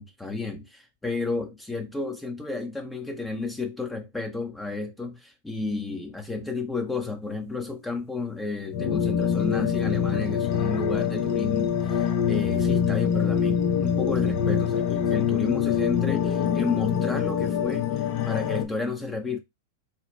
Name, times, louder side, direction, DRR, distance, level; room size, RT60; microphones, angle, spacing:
voice 1, 0.0-19.4, left 3 dB, 10° left, 0.7 m, -32 dB
sound 1, 8.7-18.7, left 8 dB, 45° left, 0.6 m, -24 dB
4.2 x 2.0 x 3.0 m
hypercardioid pair, 120°, 0 cm